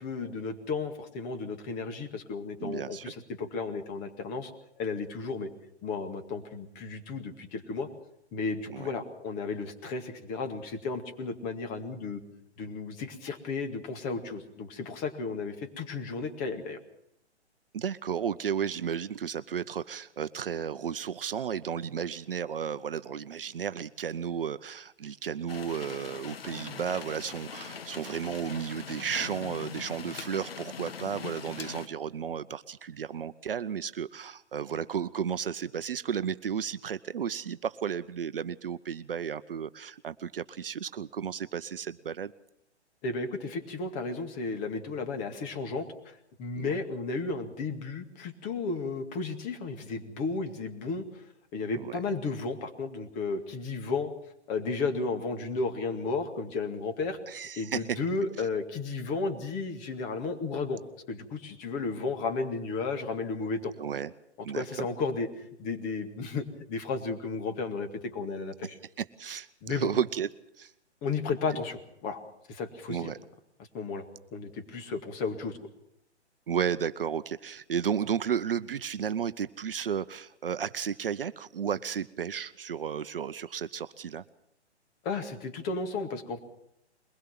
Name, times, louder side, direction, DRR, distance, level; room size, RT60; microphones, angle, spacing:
voice 1, 0.0-4.5 4.8-5.5 5.8-7.9 8.3-12.2 12.6-16.8 43.0-51.0 51.5-54.1 54.5-57.2 57.6-60.8 61.1-63.7 64.5-68.8 69.6-69.9 71.0-72.2 72.5-73.1 73.7-74.0 74.3-75.6 85.0-86.4, left 4 dB, 25° left, 6 dB, 2.1 m, -33 dB
voice 2, 2.6-3.1 8.7-8.9 17.7-42.3 46.6-46.8 51.7-52.0 57.3-58.0 63.8-64.1 64.4-64.9 69.0-70.3 70.6-70.7 72.9-73.2 76.5-84.2, right 8 dB, 55° right, 14 dB, 0.8 m, -33 dB
sound 1, 25.5-31.9, left 6 dB, 55° left, 1.4 m, -41 dB
22.5 x 20.5 x 5.9 m, 0.79 s
figure-of-eight pair, 125°, 34 cm